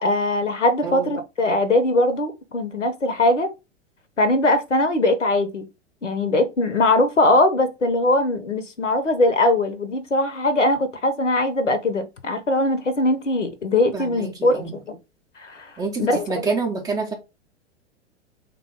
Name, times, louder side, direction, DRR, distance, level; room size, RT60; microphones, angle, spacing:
voice 1, 0.0-3.5 4.2-5.6 6.0-15.0 15.4-15.7 16.0-16.5, left 2 dB, 85° left, 0.7 m, -21 dB
voice 2, 0.8-1.1 13.9-14.3 14.6-14.7 15.8-17.1, right 4 dB, 10° right, 0.5 m, -27 dB
3.6 x 2.2 x 3.4 m
figure-of-eight pair, 95°, 36 cm